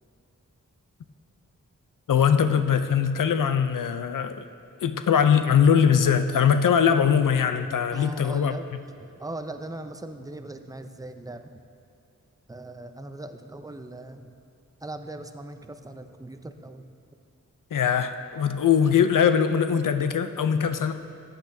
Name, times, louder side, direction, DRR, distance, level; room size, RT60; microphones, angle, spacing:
voice 1, 2.1-4.4 4.8-8.8 17.7-20.9, left 7 dB, 70° left, 9 dB, 0.5 m, -21 dB
voice 2, 7.9-8.7 9.2-11.6 12.5-14.3 14.8-16.9, right 2 dB, 10° right, 8 dB, 0.4 m, -39 dB
14.0 x 8.3 x 2.7 m, 2.4 s
wide cardioid pair, 65°, 33 cm